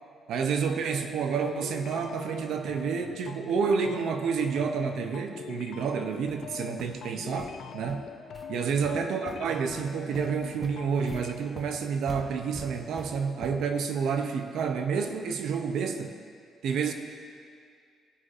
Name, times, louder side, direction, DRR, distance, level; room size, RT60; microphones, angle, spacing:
voice 1, 0.3-8.1 8.5-16.1 16.6-16.9, right 6 dB, 75° right, 6 dB, 0.5 m, -29 dB
sound 1, 1.4-11.3, left 7 dB, 70° left, 0.3 m, -43 dB
sound 2, 5.8-5.9 6.3-6.4 6.8-6.9 7.3-7.5 7.9-8.0 8.3-8.5 8.8-9.3 9.7-9.8 10.1-13.8, left 1 dB, ahead, 0.9 m, -44 dB
13.5 x 4.7 x 2.5 m, 2.2 s
cardioid pair, 90°, 0 cm